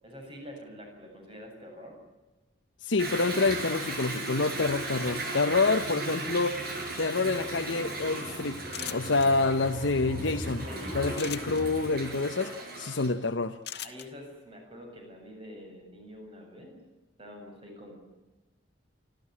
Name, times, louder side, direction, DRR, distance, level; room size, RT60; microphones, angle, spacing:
voice 1, 0.0-2.0 10.2-11.1 13.7-16.8 17.2-18.0, equal, 30° right, 1 dB, 7.7 m, -46 dB
voice 2, 2.8-6.6 7.0-8.6 8.9-10.6 10.9-12.5 12.8-13.6, left 3 dB, 80° left, 4 dB, 1.0 m, -27 dB
Toilet flush / Drip / Trickle dribble, 3.0-13.1, right 2 dB, 50° right, 6.6 m, -36 dB
sound 1, 8.7-9.3 11.1-11.6 13.6-14.1, left 12 dB, 60° left, 1.5 m, -38 dB
28.5 x 13.5 x 9.7 m, 1.1 s
head